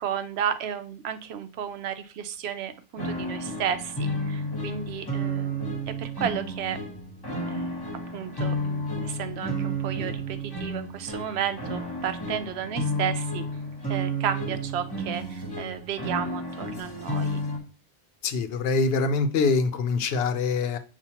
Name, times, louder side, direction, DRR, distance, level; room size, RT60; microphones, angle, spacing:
voice 1, 0.0-6.8 7.5-13.4 13.9-17.4, right 9 dB, 85° right, 10 dB, 0.8 m, -33 dB
sound 1, 3.0-17.6, right 1 dB, 25° left, 1.0 m, -31 dB
voice 2, 18.2-20.8, left 4 dB, 75° left, 9 dB, 0.8 m, -24 dB
6.8 x 2.4 x 2.8 m, 0.36 s
omnidirectional pair, 1.0 m